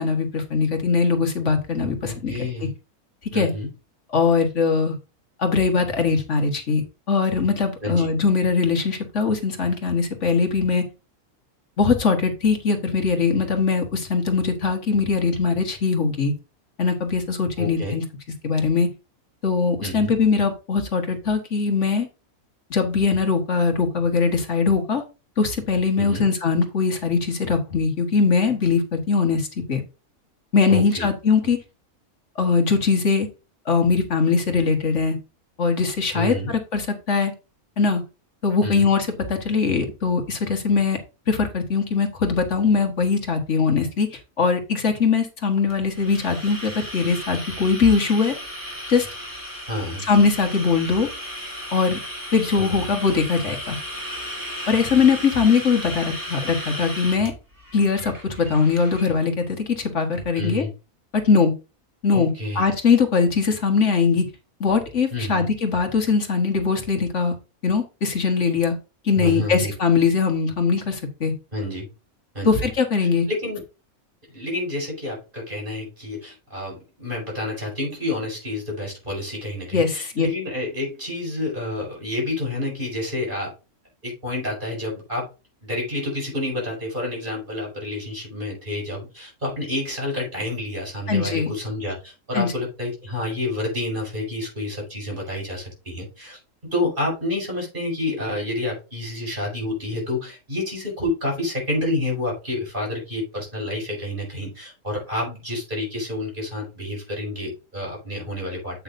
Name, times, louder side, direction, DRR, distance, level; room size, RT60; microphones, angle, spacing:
voice 1, 0.0-2.3 3.3-3.5 4.1-4.9 5.4-10.8 11.8-16.3 16.8-18.0 18.4-18.9 19.4-22.1 22.7-25.0 25.4-29.8 30.5-31.6 32.4-33.3 33.6-35.2 35.6-37.3 37.8-38.0 38.4-41.0 41.3-48.3 48.9-49.1 50.0-51.1 51.7-52.0 52.3-53.8 54.7-57.3 57.7-60.6 61.1-61.5 62.0-64.2 64.6-67.3 67.6-68.8 69.0-71.3 72.4-73.3 79.7-80.3 91.1-91.5 92.3-92.5, left 5 dB, 55° left, 5 dB, 1.7 m, -21 dB
voice 2, 2.1-2.7 3.3-3.7 7.8-8.1 17.6-18.0 19.8-20.1 26.0-26.3 30.7-31.1 36.1-36.5 38.6-38.9 49.7-50.1 52.6-52.7 60.3-60.7 62.1-62.7 65.1-65.5 69.2-69.7 71.5-71.9 72.3-72.6 73.3-73.6 74.3-83.5 84.0-85.3 85.6-96.4 96.7-108.8, left 1 dB, 35° right, -1 dB, 5.8 m, -29 dB
sound 1, 45.7-59.1, equal, 15° right, 2.4 m, -35 dB
8.5 x 8.3 x 2.6 m, 0.29 s
omnidirectional pair, 1.5 m